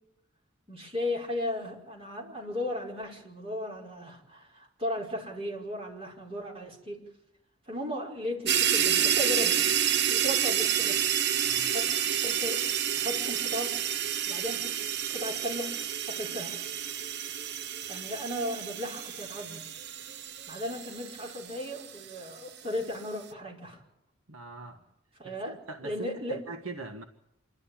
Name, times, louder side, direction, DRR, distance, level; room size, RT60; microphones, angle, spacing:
voice 1, 0.7-7.0 7.7-9.7 10.0-11.0 11.6-12.6 13.0-13.8 14.3-14.8 15.1-15.7 16.1-16.6 17.9-19.6 20.5-23.8 25.2-25.5 25.8-26.4, left 1 dB, 30° right, 5.2 m, -36 dB
sound 1, 8.5-22.1, right 9 dB, 55° right, 0.7 m, -29 dB
voice 2, 11.4-11.7 24.3-24.8 25.2-27.0, right 3 dB, 75° right, 1.5 m, -42 dB
27.0 x 12.0 x 8.7 m
head